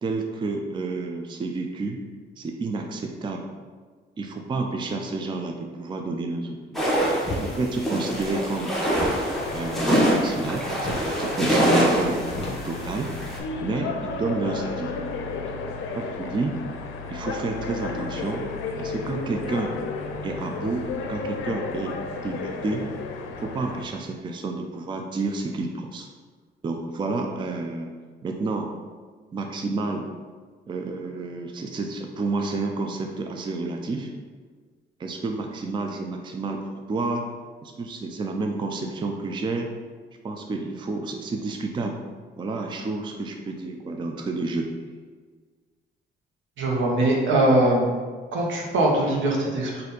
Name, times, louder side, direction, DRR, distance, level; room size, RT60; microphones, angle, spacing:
voice 1, 0.0-2.0 2.4-3.4 4.2-6.9 7.4-8.7 9.5-12.2 12.6-13.1 13.6-14.9 16.0-16.6 17.1-18.4 18.8-19.8 20.2-21.9 22.2-22.8 23.4-26.1 26.6-27.9 28.2-28.7 29.3-30.1 30.7-34.1 35.0-37.3 37.6-39.7 40.2-42.0 42.4-44.7, right 3 dB, 25° right, 3 dB, 0.4 m, -30 dB
sound 1, 6.7-13.4, right 1 dB, ahead, 1.0 m, -24 dB
sound 2, 7.2-7.5 8.9-10.4 10.8-11.2 11.5-11.6 11.9-13.5, left 2 dB, 30° left, 0.8 m, -35 dB
sound 3, 9.3-23.8, left 4 dB, 85° left, 0.5 m, -33 dB
voice 2, 46.6-47.9 48.3-49.8, right 1 dB, 75° right, -1 dB, 1.0 m, -21 dB
4.1 x 2.6 x 3.9 m, 1.5 s
cardioid pair, 90°, 20 cm